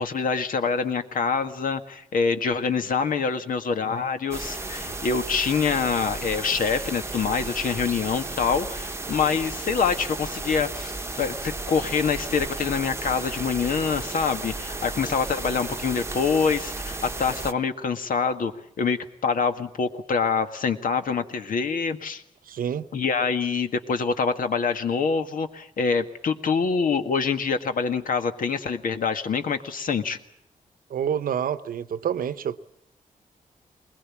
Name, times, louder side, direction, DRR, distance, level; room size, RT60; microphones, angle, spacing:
voice 1, 0.0-10.9 11.2-18.5 18.8-22.2 22.9-30.2, left 5 dB, 75° left, 1.8 m, -25 dB
sound 1, 4.3-17.5, right 2 dB, 20° right, 1.0 m, -34 dB
voice 2, 22.4-22.9 30.9-32.6, right 8 dB, 85° right, 0.9 m, -28 dB
21.5 x 21.0 x 8.5 m
cardioid pair, 95°, 14 cm